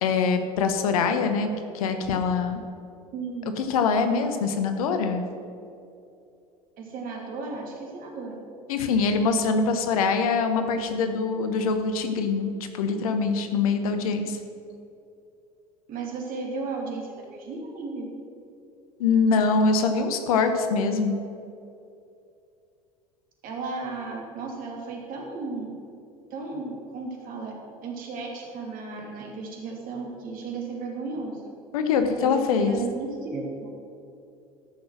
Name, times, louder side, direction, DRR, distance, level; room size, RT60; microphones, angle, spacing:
voice 1, 0.0-1.5 1.7-2.6 3.6-5.2 8.7-14.4 19.0-21.2 31.7-32.7, left 4 dB, 70° left, 7 dB, 1.1 m, -24 dB
voice 2, 3.1-3.6 6.8-8.4 15.9-18.1 23.4-25.7 26.3-27.5 27.8-31.5 32.1-33.7, right 4 dB, 45° right, 0 dB, 2.8 m, -34 dB
14.0 x 6.4 x 6.2 m, 2.6 s
figure-of-eight pair, 75°, 19 cm